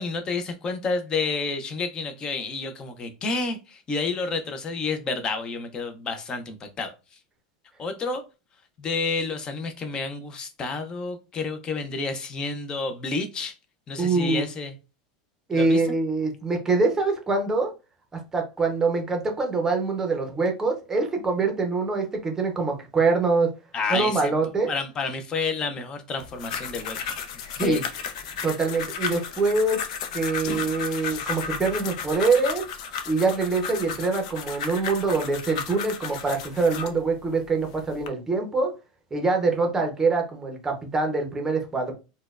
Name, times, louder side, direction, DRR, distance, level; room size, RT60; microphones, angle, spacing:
voice 1, 0.0-6.9 7.8-8.2 8.8-13.5 13.9-14.7 15.5-15.8 23.7-24.3 24.7-27.0 27.6-27.8, left 4 dB, 25° left, 8 dB, 0.5 m, -30 dB
voice 2, 14.0-14.4 15.5-17.7 18.3-23.5 23.9-24.7 27.6-27.8 28.4-29.8 30.1-32.6 33.1-38.7 39.1-41.9, right 3 dB, 10° right, 3 dB, 0.7 m, -24 dB
sound 1, 26.2-37.0 37.6-38.1, left 6 dB, 75° left, 0.5 m, -34 dB
4.2 x 2.2 x 2.3 m, 0.30 s
supercardioid pair, 155°, 4 cm